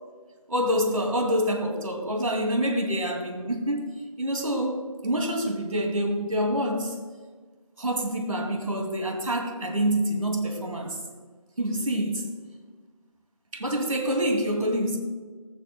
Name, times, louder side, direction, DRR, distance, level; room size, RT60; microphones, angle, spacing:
voice 1, 0.5-3.9 4.2-7.0 7.8-11.0 11.6-12.3 13.5-15.0, equal, 65° right, 2 dB, 2.5 m, -26 dB
19.0 x 7.3 x 2.2 m, 1.5 s
figure-of-eight pair, 175°, 19 cm